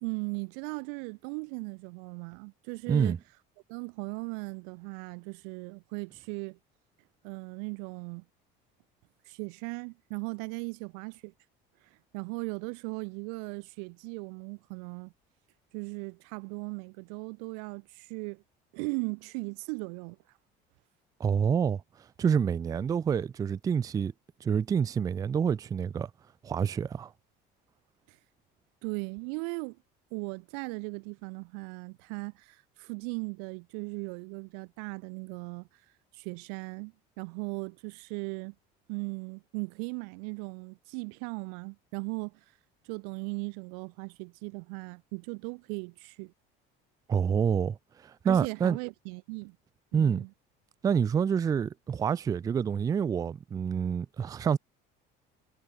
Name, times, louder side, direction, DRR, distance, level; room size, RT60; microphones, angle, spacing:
voice 1, 0.0-3.2 3.7-6.6 7.2-8.2 9.3-11.3 12.1-15.1 15.7-18.4 18.7-20.2 28.1-28.2 28.8-29.8 30.1-35.7 36.1-38.5 38.9-42.4 42.8-46.3 48.2-49.6 49.9-50.3, right 40 dB or more, 90° right, 1.2 m, -38 dB
voice 2, 21.2-21.8 22.2-24.1 24.4-26.1 26.4-27.1 47.1-48.8 49.9-50.2 50.8-54.6, right 7 dB, 20° right, 0.4 m, -27 dB
cardioid pair, 155°, 20 cm